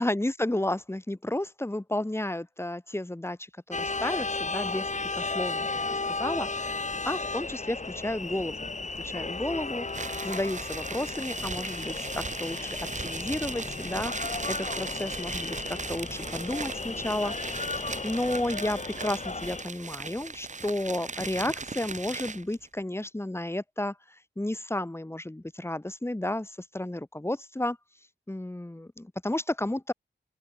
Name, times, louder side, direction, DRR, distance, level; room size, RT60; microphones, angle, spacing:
voice 1, 0.0-12.7 13.0-17.3 17.8-24.0 24.4-27.8 28.3-29.9, left 1 dB, 15° left, 1.8 m, -32 dB
sound 1, 3.7-19.6, left 3 dB, 40° left, 4.0 m, -34 dB
sound 2, 9.9-22.6, right 4 dB, 40° right, 1.3 m, -38 dB
open air
wide cardioid pair, 95°, 18 cm